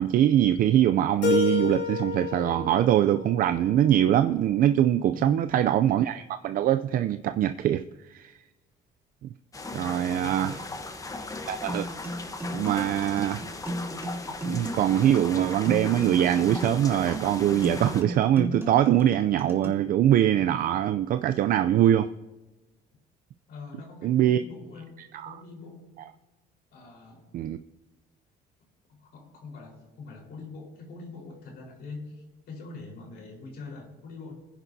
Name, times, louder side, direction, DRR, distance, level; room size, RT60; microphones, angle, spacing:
voice 1, 0.0-7.8 8.1-8.3 9.7-10.6 11.5-11.9 12.5-13.4 14.4-22.1 24.0-24.4 25.0-25.3 27.3-27.6, right 11 dB, 55° right, 10 dB, 0.4 m, -23 dB
Keyboard (musical), 1.2-4.1, left 7 dB, 90° left, 3.2 m, -30 dB
voice 2, 5.1-5.6 9.7-10.6 23.5-25.9 26.7-27.4 28.9-34.3, left 3 dB, 70° left, -1 dB, 4.3 m, -43 dB
sound 1, 9.5-18.0, left 3 dB, 20° left, 1.0 m, -38 dB
sound 2, 11.7-19.7, right 1 dB, 15° right, 1.9 m, -35 dB
22.5 x 10.0 x 2.7 m, 1.1 s
cardioid pair, 110°, 17 cm